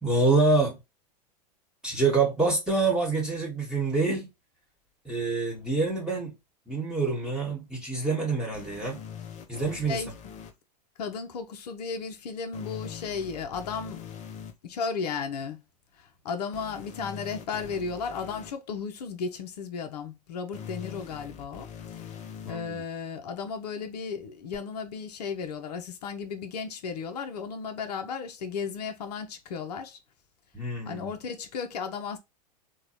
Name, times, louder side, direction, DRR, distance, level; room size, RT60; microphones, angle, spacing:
voice 1, 0.0-0.8 1.8-4.3 5.0-6.3 6.7-9.0 9.5-10.0 22.4-22.8 30.5-31.1, right 3 dB, 5° right, 1.4 m, -26 dB
sound 1, 8.5-10.5 12.5-14.5 16.5-18.5 20.5-22.5 24.5-24.6, left 8 dB, 35° left, 0.7 m, -42 dB
voice 2, 11.0-14.0 14.6-15.6 16.0-21.7 21.9-22.2 22.5-30.0 30.9-32.2, left 5 dB, 70° left, 0.7 m, -34 dB
3.8 x 2.3 x 2.9 m
hypercardioid pair, 100°, 21 cm